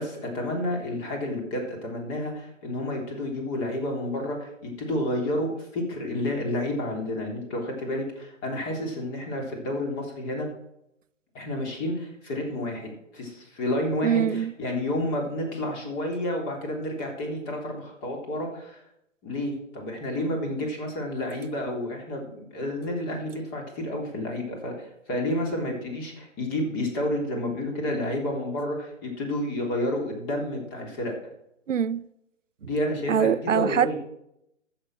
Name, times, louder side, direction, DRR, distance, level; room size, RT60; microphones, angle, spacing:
voice 1, 0.0-10.5 11.3-18.8 19.2-31.2 32.6-34.0, left 1 dB, 25° left, 3.4 m, -30 dB
voice 2, 14.0-14.5 31.7-32.1 33.1-33.9, right 8 dB, 80° right, 0.7 m, -23 dB
13.5 x 7.3 x 6.2 m
figure-of-eight pair, 135°, 37 cm